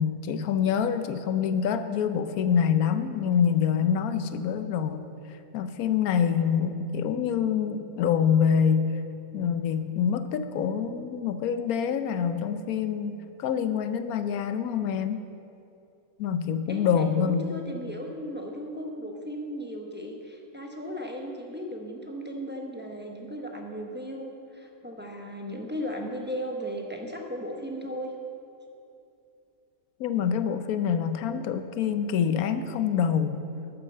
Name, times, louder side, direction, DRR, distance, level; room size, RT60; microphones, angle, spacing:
voice 1, 0.0-5.1 5.5-8.9 9.3-15.2 16.2-17.5 30.0-33.4, left 7 dB, 75° left, 10 dB, 1.1 m, -26 dB
voice 2, 16.7-24.3 24.5-28.1, equal, 10° right, 0 dB, 0.7 m, -36 dB
9.8 x 8.3 x 6.7 m, 2.7 s
omnidirectional pair, 1.6 m